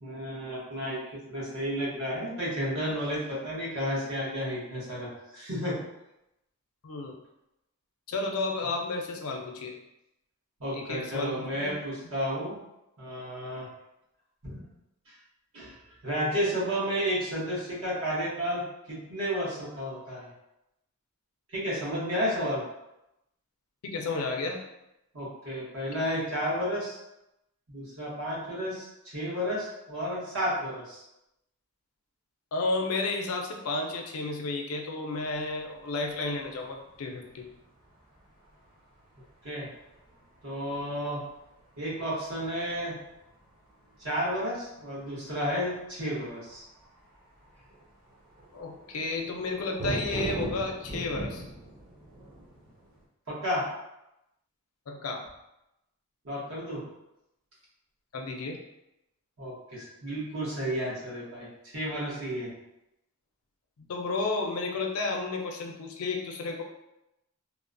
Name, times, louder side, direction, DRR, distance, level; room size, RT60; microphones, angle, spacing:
voice 1, 0.0-1.0 1.3-5.8 10.6-12.6 13.0-13.7 14.4-14.6 15.1-15.2 15.5-15.8 16.0-20.3 21.5-22.6 25.1-27.0 27.7-31.0 39.4-39.7 40.4-41.2 41.8-43.0 44.0-46.6 53.3-53.7 56.2-56.8 59.4-62.5, equal, 70° right, -6 dB, 1.0 m, -32 dB
voice 2, 8.1-9.7 10.7-11.7 23.8-24.6 32.5-37.5 48.5-51.4 54.9-55.2 58.1-58.6 63.9-66.6, left 3 dB, 75° left, 2 dB, 0.4 m, -32 dB
sound 1, 35.1-53.0, right 1 dB, 20° right, 0.5 m, -41 dB
2.9 x 2.0 x 2.5 m, 0.88 s
head